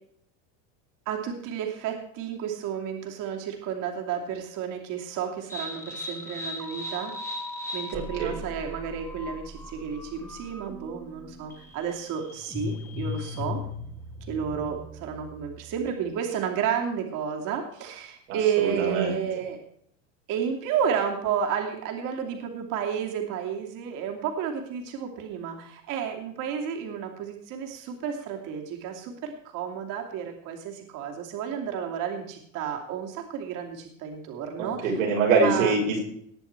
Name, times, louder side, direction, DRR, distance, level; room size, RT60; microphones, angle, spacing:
voice 1, 1.1-7.1 7.7-13.6 14.3-19.6 20.3-35.0 35.3-35.7, right 8 dB, 55° right, 2 dB, 2.8 m, -31 dB
sound 1, 5.5-16.1, left 3 dB, 5° left, 1.6 m, -38 dB
voice 2, 7.9-8.4 18.3-19.2 34.6-36.0, right 4 dB, 90° right, -1 dB, 5.7 m, -25 dB
19.5 x 7.3 x 4.6 m, 0.67 s
supercardioid pair, 125°, 38 cm